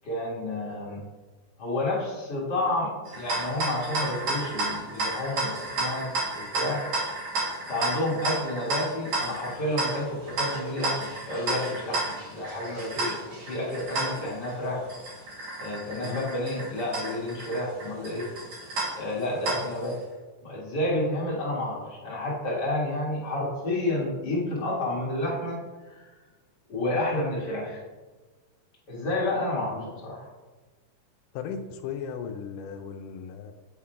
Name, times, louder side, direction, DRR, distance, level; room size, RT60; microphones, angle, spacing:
voice 1, 0.0-1.0 1.6-6.8 7.7-14.8 15.6-18.3 19.0-20.0 20.4-25.6 25.9-26.1 26.7-27.8 28.9-29.8 30.0-30.2, left 1 dB, 45° left, -5 dB, 1.4 m, -30 dB
sound 1, 3.1-19.9, right 2 dB, 60° right, 2.9 m, -32 dB
voice 2, 29.7-30.0 31.3-33.5, left 6 dB, 80° left, 6 dB, 1.9 m, -36 dB
8.8 x 3.6 x 4.4 m, 1.2 s
omnidirectional pair, 4.1 m